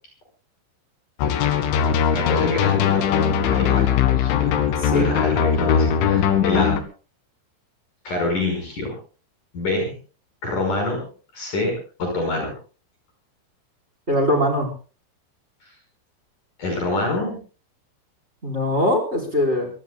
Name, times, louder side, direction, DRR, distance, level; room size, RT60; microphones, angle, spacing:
sound 1, 1.2-6.8, left 8 dB, 80° left, 4.2 m, -20 dB
voice 1, 1.9-3.1 3.5-3.9 4.2-4.6 4.9-6.8 8.0-9.0 9.5-9.9 10.4-11.0 11.3-11.7 12.0-12.5 16.6-17.4, left 2 dB, 40° left, 2 dB, 6.6 m, -26 dB
voice 2, 4.7-5.1 14.1-14.7 18.4-19.7, left 1 dB, 15° right, 3 dB, 4.3 m, -21 dB
25.5 x 19.0 x 2.3 m, 0.37 s
omnidirectional pair, 5.7 m